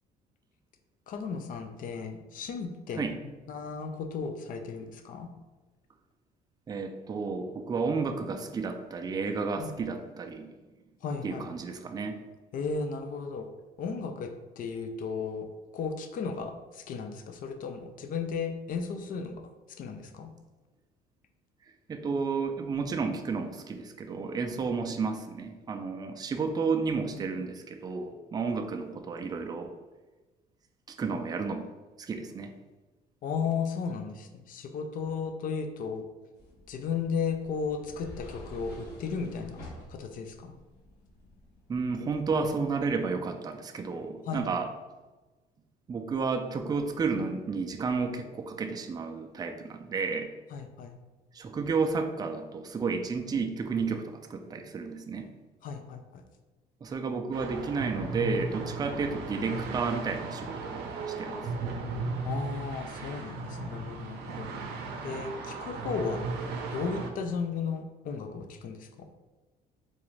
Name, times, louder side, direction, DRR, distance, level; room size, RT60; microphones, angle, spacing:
voice 1, 1.1-3.0 3.5-5.3 9.6-9.7 11.0-11.5 12.5-13.5 13.8-15.5 15.7-20.3 33.2-36.1 36.7-39.6 39.9-40.6 44.3-44.4 50.5-51.0 55.6-56.2 62.2-64.5 65.0-66.2 66.7-69.1, left 5 dB, 55° left, 7 dB, 0.4 m, -35 dB
voice 2, 6.7-10.6 11.2-12.2 21.9-29.7 30.9-31.7 32.0-32.5 41.7-44.7 45.9-50.3 51.3-55.3 56.8-61.5, right 4 dB, 25° right, 4 dB, 0.4 m, -32 dB
sound 1, 36.3-41.8, left 1 dB, 70° left, 1.3 m, -49 dB
sound 2, 57.3-67.1, right 3 dB, 80° right, 0.6 m, -36 dB
3.8 x 2.5 x 3.1 m, 1.2 s
cardioid pair, 110°, 17 cm